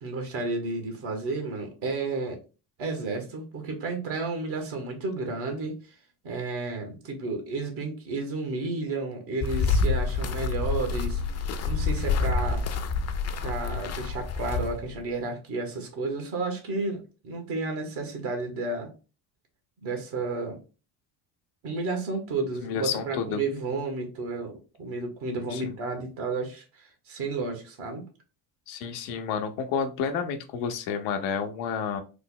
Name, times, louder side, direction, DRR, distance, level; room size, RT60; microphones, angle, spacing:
voice 1, 0.0-2.4 2.8-5.9 6.2-12.6 13.4-18.9 19.8-20.6 21.6-24.5 24.8-28.0, right 3 dB, 70° right, 4 dB, 1.2 m, -32 dB
sound 1, 9.4-15.0, left 4 dB, 35° left, 0.4 m, -27 dB
voice 2, 22.6-23.4 25.4-25.7 28.7-32.0, left 6 dB, 85° left, 7 dB, 0.7 m, -30 dB
3.3 x 2.1 x 3.7 m, 0.33 s
supercardioid pair, 65°, 49 cm